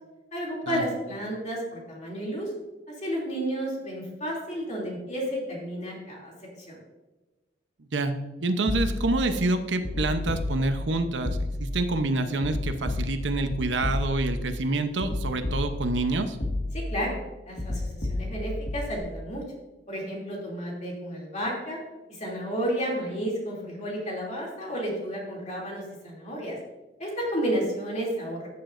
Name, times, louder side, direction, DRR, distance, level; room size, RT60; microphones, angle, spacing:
voice 1, 0.3-2.5 2.9-6.3 6.6-6.8 16.7-17.2 17.4-19.4 19.9-21.8 22.1-26.6 27.0-28.5, equal, 40° left, -3 dB, 2.8 m, -32 dB
voice 2, 8.4-16.4, right 2 dB, 90° right, 8 dB, 0.8 m, -27 dB
sound 1, 8.7-9.3 9.8-10.9 11.2-11.9 12.4-14.5 15.0-16.1 16.4-17.0 17.6-19.0, left 1 dB, 65° left, 1.9 m, -31 dB
15.0 x 6.8 x 2.6 m, 1.1 s
head